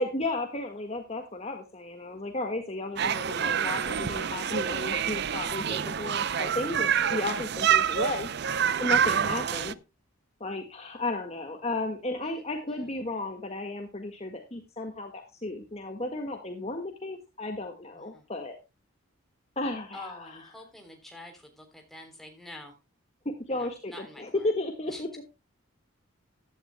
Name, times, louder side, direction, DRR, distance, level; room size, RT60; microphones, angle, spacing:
voice 1, 0.0-8.3 8.8-9.8 10.4-18.6 19.6-20.4 23.3-25.2, left 2 dB, 30° left, 4 dB, 1.7 m, -34 dB
sound 1, 3.0-9.7, right 8 dB, 50° right, 0.5 m, -27 dB
voice 2, 7.8-8.1 9.1-9.8 12.2-12.9 17.9-18.3 19.9-22.8 23.5-24.5 24.9-25.2, left 1 dB, ahead, 2 dB, 3.5 m, -48 dB
15.5 x 11.5 x 2.2 m, 0.27 s
head